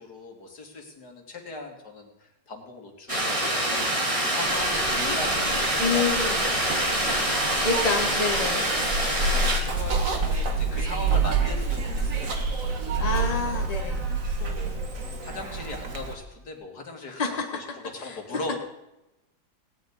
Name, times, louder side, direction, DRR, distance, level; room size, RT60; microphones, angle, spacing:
voice 1, 0.0-5.5 5.7-6.3 6.7-8.2 8.5-8.8 9.3-12.7 13.0-13.6 14.4-14.8 15.2-18.6, left 2 dB, 65° left, 3 dB, 2.7 m, -39 dB
sound 1, 3.1-9.6, right 1 dB, 20° right, 2.2 m, -25 dB
Zipper (clothing), 4.4-16.1, right 3 dB, 50° right, 1.9 m, -28 dB
voice 2, 5.8-6.4 7.6-8.7 13.0-14.0 17.1-17.6 18.0-18.2, left 4 dB, 25° left, 2 dB, 1.6 m, -28 dB
17.5 x 6.5 x 9.4 m, 0.92 s
omnidirectional pair, 1.9 m